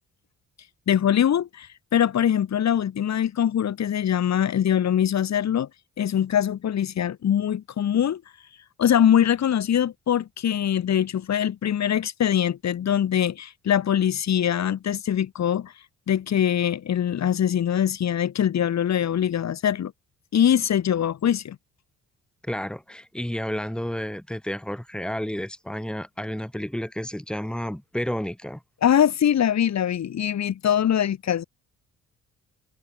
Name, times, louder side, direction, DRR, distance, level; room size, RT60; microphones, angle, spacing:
voice 1, 0.9-5.7 6.0-8.2 8.8-15.7 16.1-19.9 20.3-21.6 28.8-31.4, left 9 dB, 60° left, 6.5 m, -23 dB
voice 2, 22.4-28.6, equal, 5° left, 7.0 m, -31 dB
cardioid pair, 90°, 30 cm